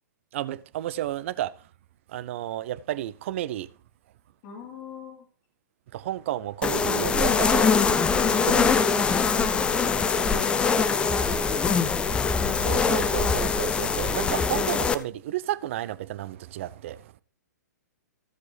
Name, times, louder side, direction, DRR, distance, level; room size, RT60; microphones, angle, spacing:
voice 1, 0.3-1.5 2.1-3.7 5.9-7.7 8.3-8.8 12.6-17.1, right 13 dB, 40° right, 0.6 m, -32 dB
voice 2, 4.4-5.3 9.9-11.3, left 4 dB, 35° left, 2.8 m, -42 dB
sound 1, 6.6-14.9, left 5 dB, 10° left, 0.5 m, -23 dB
15.0 x 7.5 x 3.3 m
figure-of-eight pair, 115°, 10 cm